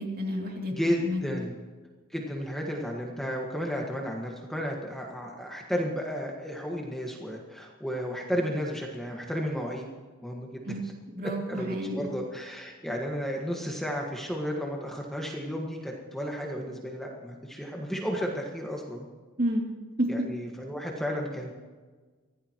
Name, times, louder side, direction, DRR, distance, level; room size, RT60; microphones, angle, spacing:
voice 1, 0.0-1.5 10.6-12.1 19.4-19.6 20.0-20.3, equal, 45° right, 0 dB, 2.7 m, -31 dB
voice 2, 0.7-1.5 2.1-9.8 10.2-10.6 11.5-19.1 20.1-21.5, equal, ahead, -1 dB, 1.6 m, -33 dB
24.5 x 16.0 x 3.1 m, 1.4 s
head